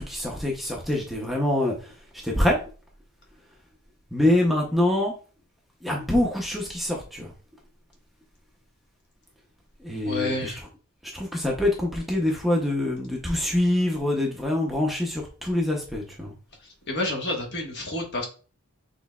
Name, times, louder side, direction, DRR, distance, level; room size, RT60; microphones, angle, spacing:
voice 1, 0.0-1.7 2.2-2.6 4.1-5.1 5.8-7.3 9.8-10.5 11.0-16.3, left 1 dB, ahead, -2 dB, 0.7 m, -25 dB
voice 2, 10.0-10.6 16.9-18.2, left 2 dB, 50° left, 0 dB, 1.3 m, -29 dB
6.1 x 3.2 x 2.3 m, 0.37 s
head